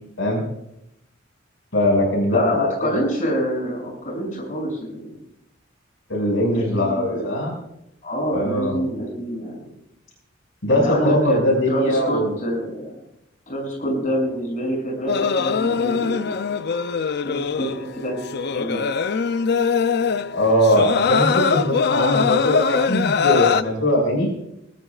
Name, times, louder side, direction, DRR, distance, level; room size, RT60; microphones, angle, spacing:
voice 1, 1.7-3.0 6.1-7.5 8.3-8.8 10.6-12.3 20.3-24.3, left 1 dB, 75° left, 0 dB, 5.9 m, -21 dB
voice 2, 2.3-5.2 6.5-7.5 8.0-9.6 10.7-11.4 11.7-13.0 13.5-16.4 17.2-18.2 18.5-18.8, equal, 40° left, -1 dB, 7.3 m, -26 dB
sound 1, 15.1-23.6, left 6 dB, 55° left, 0.5 m, -22 dB
20.5 x 18.5 x 2.4 m, 0.80 s
head